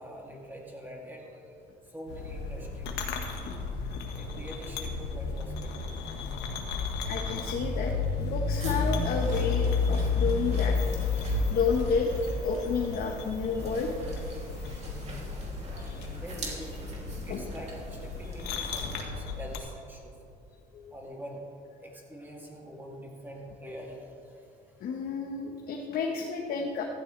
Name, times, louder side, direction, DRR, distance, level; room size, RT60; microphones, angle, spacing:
voice 1, 0.0-1.6 1.9-3.2 3.9-6.1 16.1-17.0 17.2-20.1 20.9-21.4 21.8-24.5, equal, 10° right, -2 dB, 2.8 m, -44 dB
sound 1, 2.1-19.6, left 4 dB, 85° left, 1.6 m, -32 dB
voice 2, 7.1-11.2 11.5-12.1 12.4-14.0 15.8-16.1 17.3-17.4 18.4-18.7 20.7-20.9 24.8-26.8, left 5 dB, 60° left, 1 dB, 1.3 m, -31 dB
sound 2, 8.6-19.0, right 2 dB, 40° right, 3.0 m, -43 dB
15.5 x 14.0 x 3.4 m, 2.7 s
cardioid pair, 110°, 17 cm